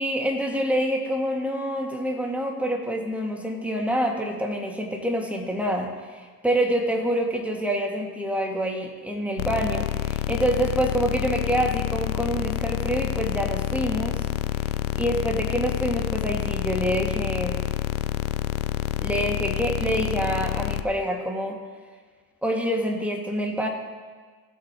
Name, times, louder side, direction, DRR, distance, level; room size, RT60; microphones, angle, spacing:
voice 1, 0.0-14.2 14.9-17.7 19.0-21.6 22.4-23.7, equal, 5° right, 1 dB, 2.1 m, -26 dB
sound 1, 9.4-20.8, left 13 dB, 70° left, 0.7 m, -28 dB
19.0 x 8.2 x 3.1 m, 1.5 s
hypercardioid pair, 70°, 46 cm